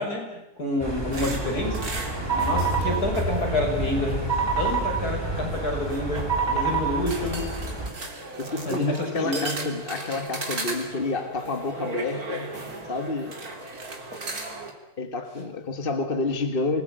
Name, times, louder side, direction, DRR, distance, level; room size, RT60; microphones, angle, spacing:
voice 1, 0.0-1.8 2.3-4.2 4.6-7.5 8.7-9.7, left 1 dB, 85° left, 1 dB, 7.3 m, -28 dB
sound 1, 0.8-7.9, right 3 dB, 15° right, 4.9 m, -28 dB
sound 2, 1.1-14.7, right 3 dB, 70° right, 3.6 m, -37 dB
voice 2, 8.4-12.5 12.9-13.4 15.0-16.8, left 3 dB, 35° left, 7 dB, 2.0 m, -29 dB
28.0 x 20.0 x 9.2 m, 0.89 s
omnidirectional pair, 1.6 m